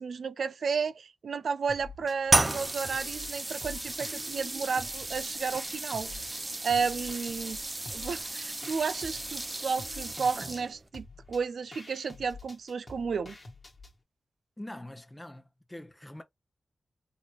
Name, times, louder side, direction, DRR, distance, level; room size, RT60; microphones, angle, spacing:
voice 1, 0.0-6.1 6.6-7.6 7.9-13.4, right 5 dB, 80° right, 0.4 m, -32 dB
sound 1, 1.7-2.2 2.5-4.5 4.8-6.4 6.7-13.9, left 2 dB, 35° left, 1.2 m, -48 dB
sound 2, 2.3-10.9, right 2 dB, 25° right, 0.5 m, -33 dB
voice 2, 14.6-16.2, left 1 dB, 10° left, 0.7 m, -44 dB
4.0 x 3.0 x 2.4 m
wide cardioid pair, 125°, 0 cm